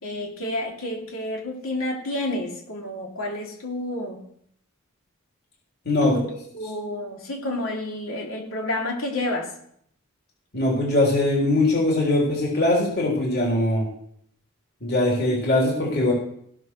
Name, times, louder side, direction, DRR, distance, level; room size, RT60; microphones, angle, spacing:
voice 1, 0.0-4.2 6.0-6.3 6.5-9.5, left 1 dB, 75° left, 0 dB, 2.8 m, -30 dB
voice 2, 5.9-6.2 10.5-13.9 14.8-16.1, left 1 dB, 50° left, -3 dB, 3.8 m, -21 dB
16.5 x 6.3 x 6.3 m, 0.67 s
head